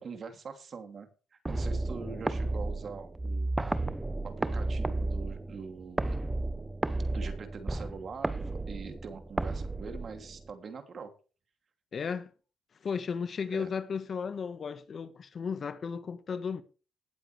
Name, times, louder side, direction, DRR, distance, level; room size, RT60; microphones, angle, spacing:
voice 1, 0.0-1.1 1.5-3.5 4.2-6.2 7.1-8.4 8.7-11.1 13.5-13.7, right 5 dB, 50° right, 2.9 m, -43 dB
sound 1, 1.5-10.5, right 2 dB, 15° right, 0.9 m, -33 dB
voice 2, 11.9-12.3 12.8-16.6, left 6 dB, 50° left, 1.5 m, -34 dB
18.5 x 8.0 x 3.4 m
cardioid pair, 90°, 0 cm